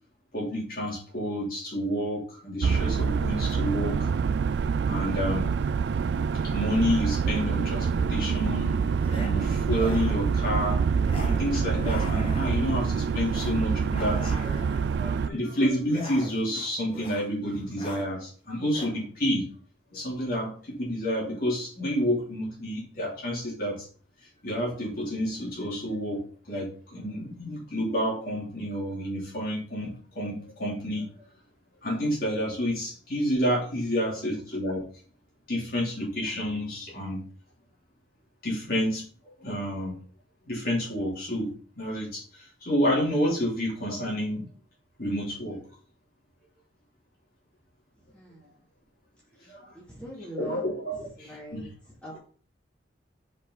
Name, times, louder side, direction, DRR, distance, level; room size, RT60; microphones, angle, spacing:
voice 1, 0.3-4.1 4.8-5.5 6.3-8.8 9.1-10.8 11.2-14.5 14.9-19.4 19.9-23.9 24.4-31.1 31.8-34.8 35.5-37.2 38.4-39.0 39.4-40.0 40.5-41.5 41.8-44.4 45.0-45.7 49.4-49.7 50.4-51.7, equal, 50° left, -4 dB, 3.2 m, -29 dB
sound 1, 2.6-15.3, right 6 dB, 65° right, 0.3 m, -26 dB
sound 2, 9.0-9.3 9.6-10.4 11.0-11.4 11.7-12.8 13.3-13.6 13.9-14.9 15.8-16.6 16.9-17.3 17.6-18.1 18.6-18.9, left 2 dB, 30° left, 1.6 m, -41 dB
voice 2, 48.1-48.5 49.7-50.6 51.2-51.7 52.0-52.2, equal, 5° left, -7 dB, 2.5 m, -40 dB
6.6 x 5.2 x 4.0 m, 0.42 s
head